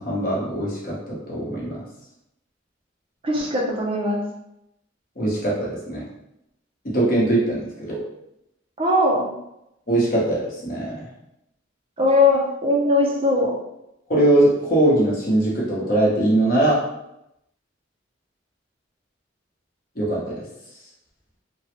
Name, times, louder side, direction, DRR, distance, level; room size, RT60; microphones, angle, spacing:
voice 1, 0.0-1.8 5.2-6.0 6.9-8.0 9.9-11.1 14.1-16.8 20.0-20.4, right 1 dB, 45° left, -5 dB, 1.0 m, -21 dB
voice 2, 3.2-4.2 8.8-9.3 12.0-13.5, left 2 dB, 30° right, -2 dB, 0.6 m, -20 dB
3.1 x 2.3 x 2.9 m, 0.83 s
head